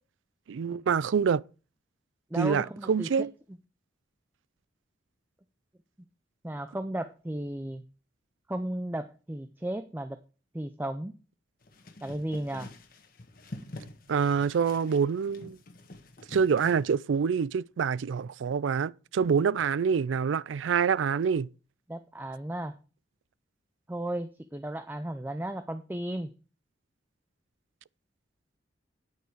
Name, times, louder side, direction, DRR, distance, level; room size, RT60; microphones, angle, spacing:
voice 1, 0.5-1.4 2.4-3.3 14.1-15.6 16.3-21.5, right 6 dB, 80° right, 0.4 m, -26 dB
voice 2, 2.3-3.1 6.4-7.8 8.5-10.2 10.5-11.1 12.0-12.7 21.9-22.8 23.9-26.3, right 1 dB, 10° right, 0.4 m, -34 dB
sound 1, 11.6-16.9, left 2 dB, 50° left, 1.3 m, -46 dB
9.3 x 8.2 x 4.6 m
head